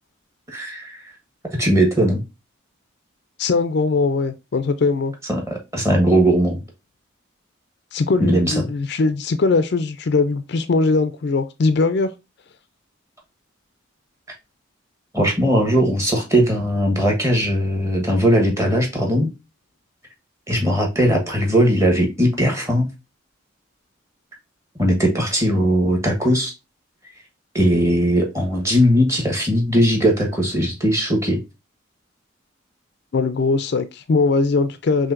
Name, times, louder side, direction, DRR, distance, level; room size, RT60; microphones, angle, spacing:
voice 1, 0.5-1.0 1.6-2.2 5.3-6.6 8.2-8.6 15.1-19.3 20.5-22.9 24.8-26.5 27.5-31.4, equal, 15° right, 1.1 m, -19 dB
voice 2, 3.4-5.1 7.9-12.1 33.1-35.1, left 3 dB, 55° left, 0.4 m, -20 dB
5.7 x 2.7 x 2.5 m
head